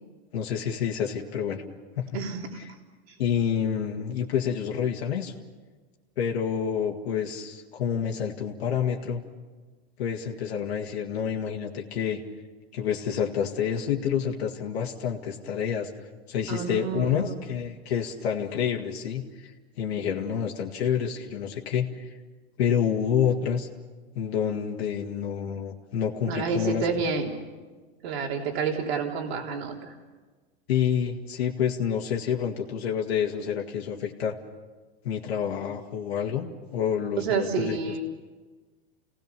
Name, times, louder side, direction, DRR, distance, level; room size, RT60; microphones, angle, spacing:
voice 1, 0.3-1.6 2.0-2.2 3.2-5.3 6.2-9.2 10.0-12.2 12.7-15.9 16.3-19.5 19.8-22.2 22.6-23.7 24.2-26.9 30.7-34.3 35.0-37.8, left 8 dB, 75° left, 0 dB, 2.2 m, -28 dB
voice 2, 2.1-2.6 16.5-17.4 26.3-27.3 28.0-29.9 37.2-38.0, right 5 dB, 75° right, 1 dB, 3.3 m, -29 dB
28.0 x 18.5 x 7.0 m, 1.3 s
hypercardioid pair, 115°, 32 cm